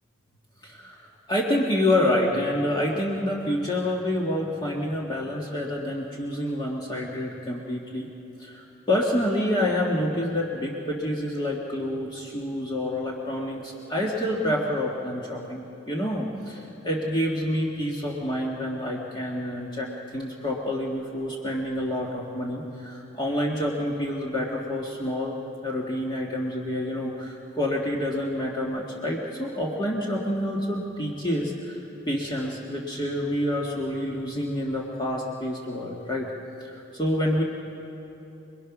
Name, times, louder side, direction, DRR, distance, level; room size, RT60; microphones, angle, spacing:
voice 1, 0.6-8.1 8.4-15.6 15.9-25.4 25.6-31.8 32.1-36.3 36.6-37.4, left 1 dB, 20° left, -3 dB, 1.7 m, -28 dB
27.5 x 21.5 x 6.0 m, 2.9 s
head